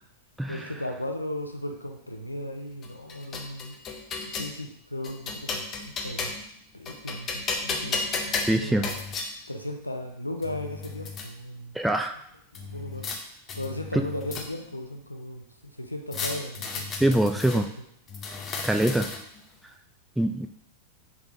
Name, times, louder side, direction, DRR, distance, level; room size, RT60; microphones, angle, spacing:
voice 1, 0.5-3.8 4.3-6.3 6.7-8.0 8.6-8.9 9.5-11.8 12.5-13.1 13.5-17.2 17.5-17.7, left 1 dB, 85° left, 4 dB, 0.6 m, -36 dB
sound 1, 2.8-4.5 5.0-6.5 6.9-9.3 10.1-10.2 10.4-11.3 12.5-13.2 13.5-14.8 16.1-17.6 18.1-19.4, left 4 dB, 30° left, 0.7 m, -33 dB
voice 2, 8.5-8.9 11.8-12.1 13.9-14.0 17.0-17.7 18.6-19.1 20.2-20.5, right 1 dB, 5° right, 5 dB, 0.3 m, -23 dB
4.8 x 3.6 x 2.9 m, 0.70 s
figure-of-eight pair, 90°, 0 cm